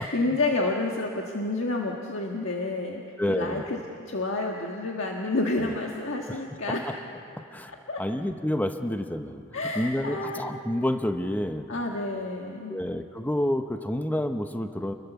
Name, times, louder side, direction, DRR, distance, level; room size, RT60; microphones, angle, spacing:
voice 1, 0.0-3.0 3.3-3.8 4.1-6.8 7.9-8.0 9.5-10.6 11.7-12.8, left 2 dB, 65° left, 0 dB, 1.6 m, -29 dB
voice 2, 3.2-3.6 5.6-5.7 6.3-6.4 6.7-7.0 7.5-7.7 8.0-9.4 9.7-11.7 12.7-14.9, left 1 dB, 10° left, 7 dB, 0.8 m, -29 dB
30.0 x 21.5 x 7.0 m, 2.6 s
head